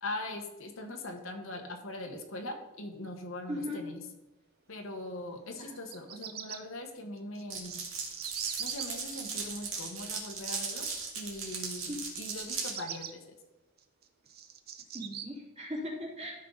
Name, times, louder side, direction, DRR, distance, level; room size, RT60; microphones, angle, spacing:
voice 1, 0.0-4.0 4.7-7.8 8.6-10.9 11.1-13.4, left 1 dB, 70° left, 4 dB, 1.2 m, -41 dB
voice 2, 3.5-3.8 5.6-5.8 11.9-12.0 14.9-16.3, left 1 dB, 30° right, -5 dB, 3.0 m, -38 dB
Bird vocalization bird call bird song, 5.7-6.6 7.3-8.8 12.4-13.1 13.8-15.2, right 9 dB, 50° right, 0.7 m, -41 dB
Glass, 7.5-12.7, right 5 dB, 75° right, 2.0 m, -37 dB
13.0 x 5.5 x 3.9 m, 1.0 s
head